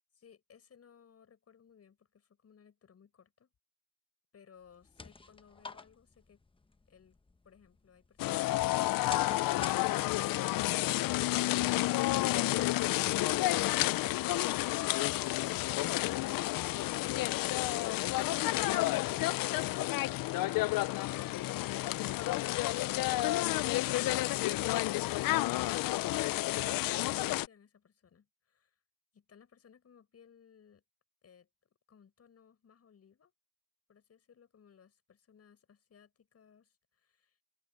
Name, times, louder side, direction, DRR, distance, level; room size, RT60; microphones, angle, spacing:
voice 1, 0.1-3.5 4.3-6.4 6.9-7.2 7.4-9.1 9.4-10.1 27.2-28.8 29.1-30.8 31.2-33.3 33.9-37.4, left 7 dB, 45° left, 7.1 m, -62 dB
sound 1, 4.6-10.4, left 3 dB, 15° left, 1.1 m, -51 dB
sound 2, 8.2-27.5, left 17 dB, 80° left, 0.6 m, -30 dB
cardioid pair, 100°, 33 cm